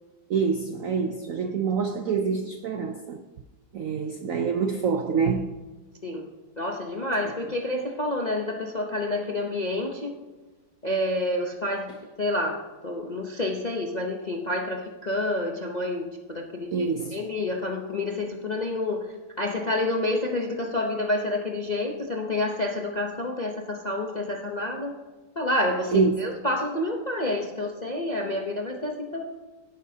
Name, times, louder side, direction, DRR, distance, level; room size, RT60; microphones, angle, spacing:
voice 1, 0.3-3.2 3.7-5.6 16.7-17.2 25.9-26.2, right 5 dB, 75° right, 0.7 m, -26 dB
voice 2, 6.0-10.1 10.8-25.0 25.4-29.2, left 1 dB, 45° left, 0.5 m, -29 dB
17.5 x 9.3 x 2.8 m
omnidirectional pair, 2.1 m